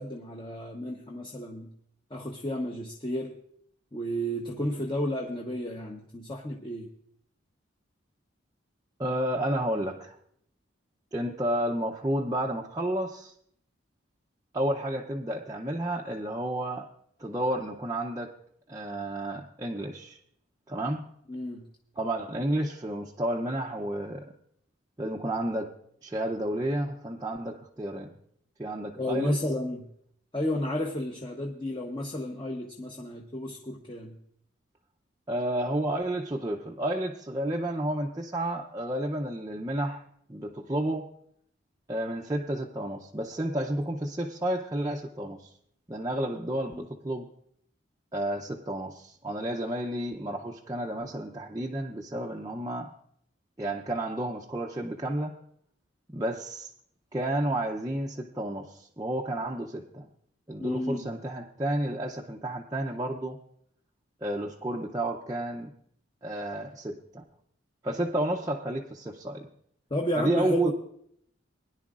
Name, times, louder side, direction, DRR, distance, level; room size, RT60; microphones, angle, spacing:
voice 1, 0.0-1.7 2.1-3.3 3.9-6.9 21.3-21.7 29.0-29.9 30.3-34.2 46.7-46.8 60.6-61.1 69.9-70.7, left 1 dB, 25° left, 0 dB, 0.9 m, -32 dB
voice 2, 9.0-10.2 11.1-13.3 14.5-16.9 17.2-18.3 18.7-20.2 20.7-21.1 22.0-24.3 25.0-25.7 26.0-28.1 28.6-29.4 35.3-40.0 40.3-41.1 41.9-45.5 45.9-47.3 48.1-52.9 53.6-55.4 56.1-56.7 57.1-60.1 60.5-63.4 64.2-65.7 66.2-67.2 67.8-69.5 70.1-70.7, right 1 dB, 15° right, -2 dB, 0.6 m, -31 dB
21.0 x 10.5 x 2.4 m, 0.68 s
head